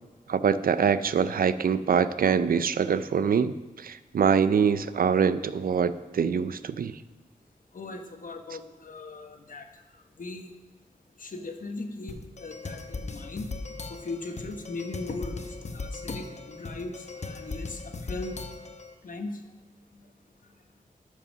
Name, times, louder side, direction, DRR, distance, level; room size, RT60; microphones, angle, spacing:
voice 1, 0.3-6.9, right 6 dB, 75° right, 14 dB, 0.5 m, -24 dB
voice 2, 7.7-9.7 10.2-10.5 11.2-13.5 14.0-15.4 15.7-17.8 18.1-18.4 19.0-19.4, left 3 dB, 65° left, 5 dB, 1.2 m, -38 dB
sound 1, 12.1-18.9, left 3 dB, 50° left, 1.0 m, -39 dB
12.5 x 5.6 x 6.3 m, 1.2 s
wide cardioid pair, 80°, 15 cm